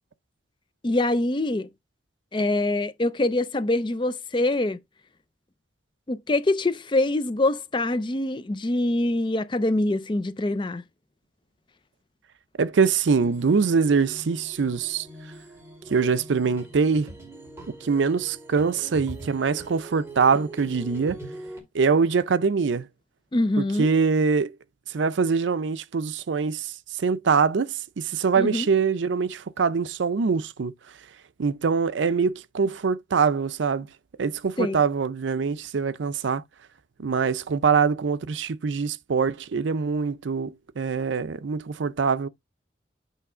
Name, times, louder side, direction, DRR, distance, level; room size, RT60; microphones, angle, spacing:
voice 1, 0.8-1.7 2.3-4.8 6.1-10.8 23.3-23.9 28.4-28.7 34.6-34.8, left 2 dB, 25° left, 0.4 m, -24 dB
voice 2, 12.6-15.1 15.9-17.1 17.8-21.2 21.7-22.9 23.6-24.6 24.9-30.7 31.4-33.9 34.2-36.4 37.0-42.3, right 5 dB, 75° right, 0.5 m, -24 dB
sound 1, 13.1-21.6, right 1 dB, 15° right, 2.2 m, -42 dB
8.4 x 3.2 x 4.9 m
head